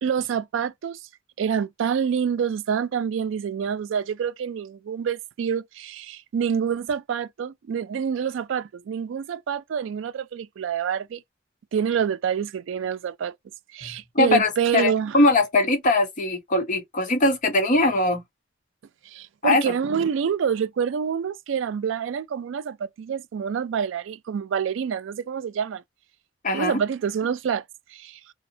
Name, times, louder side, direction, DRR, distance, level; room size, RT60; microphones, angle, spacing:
voice 1, 0.0-1.0 1.4-11.2 11.7-13.3 13.7-15.2 19.1-25.8 26.5-27.6 27.9-28.2, right 7 dB, 75° right, 0.3 m, -27 dB
voice 2, 13.8-18.2 19.4-19.7 26.4-26.7, left 2 dB, 40° left, 0.7 m, -21 dB
2.8 x 2.1 x 2.5 m
head